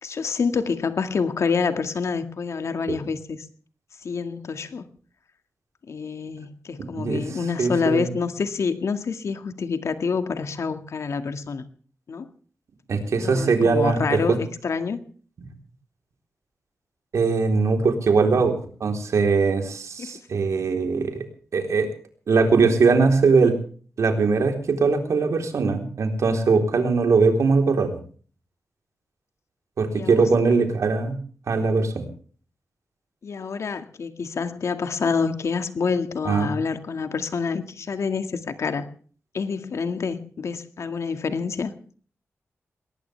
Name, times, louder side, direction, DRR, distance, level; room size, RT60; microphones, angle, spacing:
voice 1, 0.0-3.4 4.0-4.8 5.9-11.6 12.1-12.3 13.2-15.0 20.0-20.1 29.9-30.3 33.2-38.9 39.3-41.9, left 5 dB, 70° left, 9 dB, 2.0 m, -27 dB
voice 2, 7.6-8.1 12.9-14.4 17.1-21.3 21.5-21.9 22.3-23.6 24.0-28.0 29.8-31.2 31.5-32.1 36.3-36.5, right 4 dB, 80° right, 5 dB, 3.8 m, -21 dB
21.5 x 19.5 x 3.4 m, 0.44 s
wide cardioid pair, 130°, 5 cm